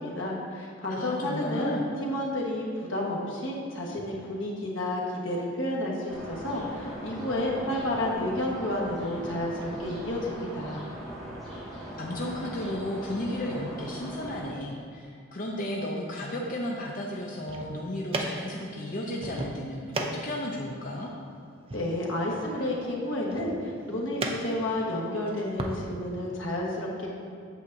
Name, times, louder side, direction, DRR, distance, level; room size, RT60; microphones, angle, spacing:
voice 1, 0.0-10.9 21.7-27.1, left 1 dB, 85° left, -3 dB, 1.3 m, -31 dB
voice 2, 1.0-1.9 11.4-11.7 12.0-21.1, left 1 dB, 45° left, -2 dB, 0.6 m, -34 dB
sound 1, 6.1-14.5, equal, ahead, 1.7 m, -40 dB
sound 2, 17.2-25.8, right 2 dB, 30° right, 0.5 m, -38 dB
8.2 x 7.1 x 2.6 m, 2.3 s
head